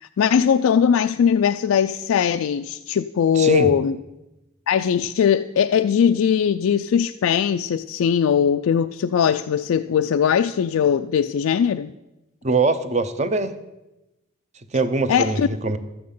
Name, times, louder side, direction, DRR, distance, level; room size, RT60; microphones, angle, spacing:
voice 1, 0.0-4.0 4.7-11.9 15.1-15.5, left 7 dB, 85° left, 9 dB, 0.3 m, -20 dB
voice 2, 3.3-3.7 12.4-13.5 14.7-15.8, right 3 dB, 35° right, 10 dB, 0.7 m, -22 dB
13.0 x 8.5 x 5.5 m, 0.98 s
head